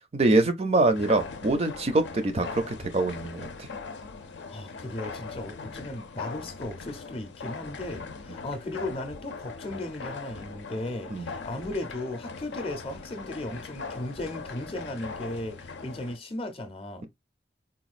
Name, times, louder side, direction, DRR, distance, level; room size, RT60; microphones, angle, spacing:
voice 1, 0.1-3.7 11.1-11.3, right 2 dB, 35° right, 0.4 m, -24 dB
sound 1, 0.9-16.2, left 4 dB, 90° left, 0.6 m, -40 dB
voice 2, 4.5-17.1, left 1 dB, 30° left, 0.6 m, -36 dB
4.0 x 2.3 x 2.4 m
head